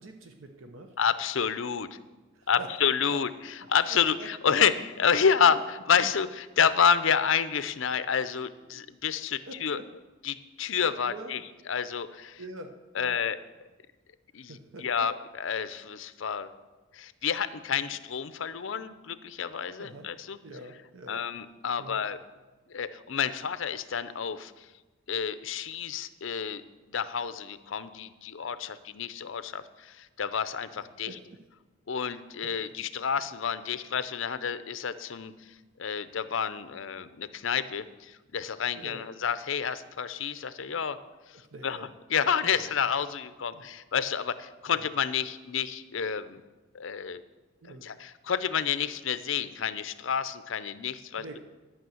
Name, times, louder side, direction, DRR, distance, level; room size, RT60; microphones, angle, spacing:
voice 1, 0.0-0.9 2.3-2.7 3.1-3.2 3.9-4.7 5.4-5.5 6.0-6.1 8.7-8.8 9.5-9.8 11.0-11.4 12.4-13.2 14.5-15.1 19.8-20.1 20.4-21.2 21.8-22.0 31.1-31.2 32.1-32.5 33.7-33.8 38.8-39.0 41.3-41.9 42.4-42.6 43.5-43.6 44.7-44.9 47.6-47.9 51.2-51.4, right 2 dB, 70° right, 5 dB, 0.8 m, -45 dB
voice 2, 1.0-2.0 2.5-9.8 10.2-11.4 11.7-12.4 13.0-13.4 14.3-16.5 16.9-20.4 21.1-22.2 22.7-24.7 25.1-26.6 26.9-31.1 31.9-35.3 35.8-41.0 41.3-41.4 41.6-46.4 46.7-47.2 47.8-51.2, left 7 dB, 65° left, 13 dB, 0.6 m, -29 dB
12.0 x 6.2 x 7.8 m, 1.2 s
head